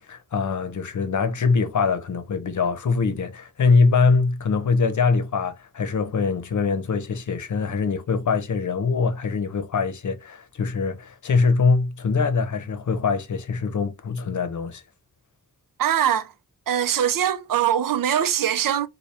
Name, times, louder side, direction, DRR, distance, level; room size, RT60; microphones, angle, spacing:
voice 1, 0.0-14.8, left 4 dB, 60° left, 0.7 m, -23 dB
voice 2, 15.8-16.3 16.7-18.9, right 10 dB, 75° right, 0.5 m, -22 dB
4.2 x 2.2 x 3.3 m
wide cardioid pair, 130°, 33 cm